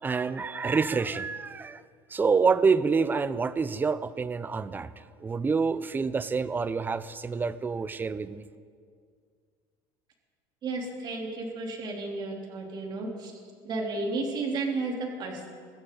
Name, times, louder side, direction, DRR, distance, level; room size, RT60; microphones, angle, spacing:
voice 1, 0.0-1.8 2.1-8.5, right 5 dB, 20° right, 15 dB, 0.6 m, -27 dB
voice 2, 10.6-13.3 13.6-15.5, right 3 dB, 45° right, 0 dB, 3.2 m, -32 dB
22.5 x 14.5 x 3.9 m, 2.1 s
supercardioid pair, 115°, 11 cm